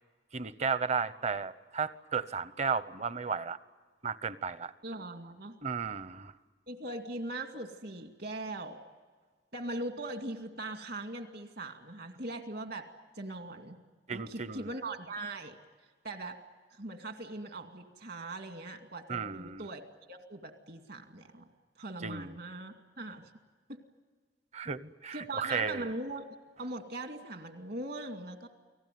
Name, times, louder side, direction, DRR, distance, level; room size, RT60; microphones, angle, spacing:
voice 1, 0.3-3.6 4.0-4.7 5.6-6.3 14.1-14.7 19.1-19.6 22.0-22.3 24.5-25.9, right 5 dB, 40° right, 14 dB, 0.9 m, -34 dB
voice 2, 4.8-5.6 6.7-8.8 9.5-12.9 13.1-13.8 14.1-15.6 16.0-16.4 16.7-19.8 20.1-21.5 21.8-23.3 23.7-23.8 25.1-26.2 26.6-28.5, right 2 dB, 65° right, 5 dB, 2.4 m, -40 dB
30.0 x 19.5 x 9.3 m, 1.4 s
head